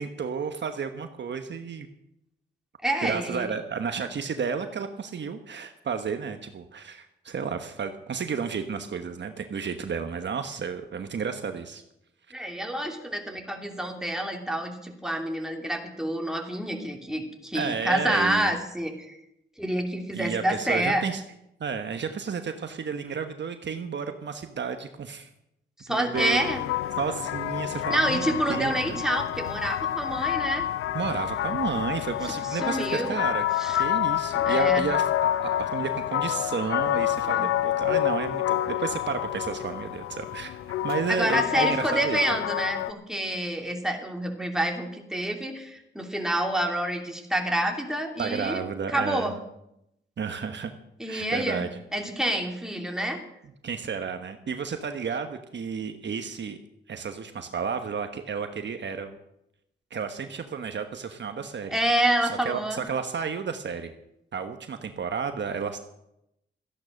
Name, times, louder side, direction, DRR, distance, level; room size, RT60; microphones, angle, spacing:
voice 1, 0.0-1.9 3.0-11.8 17.5-18.6 20.1-21.2 21.6-25.3 25.9-26.4 27.0-29.0 30.9-33.4 33.8-42.2 48.2-49.3 50.2-50.7 51.1-51.7 53.6-56.6 56.9-59.2 59.9-63.9 64.3-65.8, right 6 dB, 60° right, 7 dB, 1.2 m, -32 dB
voice 2, 2.8-3.5 12.3-19.2 19.6-21.0 25.8-26.6 27.9-30.7 32.5-33.2 33.6-33.8 34.4-34.8 37.3-37.5 41.1-48.6 48.9-49.3 51.0-51.7 51.9-53.2 61.7-62.8, right 1 dB, 5° right, 2 dB, 2.9 m, -28 dB
sound 1, 26.1-42.9, left 12 dB, 90° left, 0.5 m, -28 dB
14.0 x 10.5 x 6.4 m, 0.81 s
cardioid pair, 65°, 21 cm